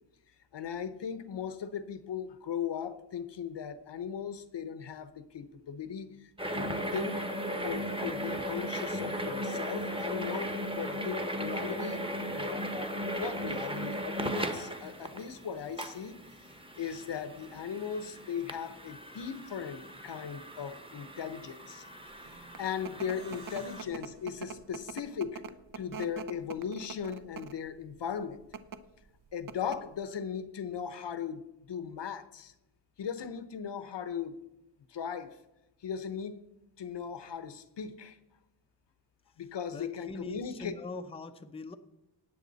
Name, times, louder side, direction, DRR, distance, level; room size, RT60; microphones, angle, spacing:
voice 1, 0.5-12.0 12.3-16.2 16.5-21.8 22.2-25.4 25.8-28.4 29.3-32.5 33.0-34.4 34.9-35.4 35.8-36.4 36.8-38.2 39.4-40.7, left 7 dB, 70° left, 0.9 m, -38 dB
sound 1, 6.4-23.8, equal, 10° right, 1.0 m, -37 dB
sound 2, 22.2-27.7 28.4-28.8 29.2-29.3 29.5-30.0, right 6 dB, 50° right, 0.7 m, -43 dB
voice 2, 23.0-23.4 39.7-41.8, left 3 dB, 15° left, 0.5 m, -43 dB
Plucked string instrument, 23.0-25.8, right 2 dB, 70° right, 4.4 m, -60 dB
18.0 x 7.1 x 4.0 m
wide cardioid pair, 130°, 45 cm